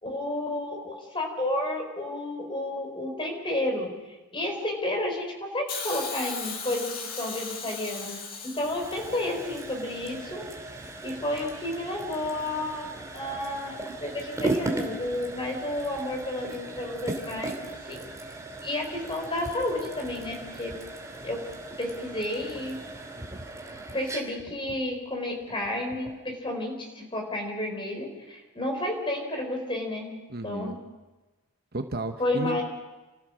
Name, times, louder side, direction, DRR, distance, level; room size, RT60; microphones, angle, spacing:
voice 1, 0.0-3.9 4.3-10.4 11.0-13.7 14.0-17.6 17.8-18.4 18.6-20.7 21.2-21.4 21.8-22.8 23.9-30.2 30.4-30.7 32.2-32.6, left 1 dB, 20° left, 2 dB, 4.4 m, -31 dB
Hiss, 5.7-9.8 10.8-10.9, left 5 dB, 40° left, 2.8 m, -37 dB
sound 1, 8.6-26.3, right 2 dB, 15° right, 2.7 m, -37 dB
voice 2, 30.3-30.8 31.7-32.6, right 2 dB, 45° right, 5 dB, 1.2 m, -33 dB
29.5 x 14.0 x 6.5 m, 1.1 s
head